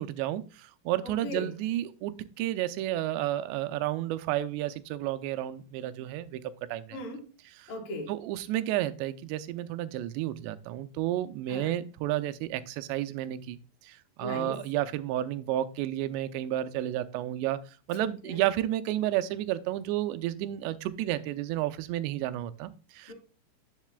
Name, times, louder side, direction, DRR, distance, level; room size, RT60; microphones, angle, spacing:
voice 1, 0.0-6.4 6.7-7.0 8.1-17.6 17.9-23.1, right 13 dB, 80° right, 2.8 m, -31 dB
voice 2, 1.0-1.5 6.9-7.3 7.7-8.1 11.5-11.8 14.2-14.6 18.0-18.4 23.1-23.2, left 1 dB, 55° left, 3.6 m, -38 dB
10.5 x 7.4 x 2.3 m
omnidirectional pair, 5.1 m